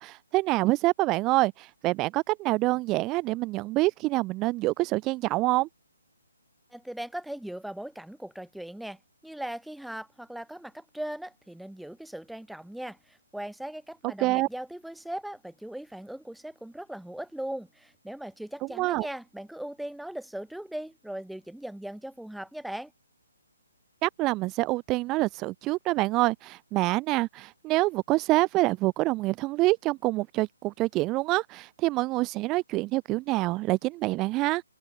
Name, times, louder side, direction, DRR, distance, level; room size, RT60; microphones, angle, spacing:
voice 1, 0.0-5.7 14.2-14.5 18.8-19.1 24.0-34.6, right 20 dB, 15° right, 0.5 m, -26 dB
voice 2, 6.7-22.9, right 1 dB, ahead, 1.0 m, -39 dB
hypercardioid pair, 165°, 0 cm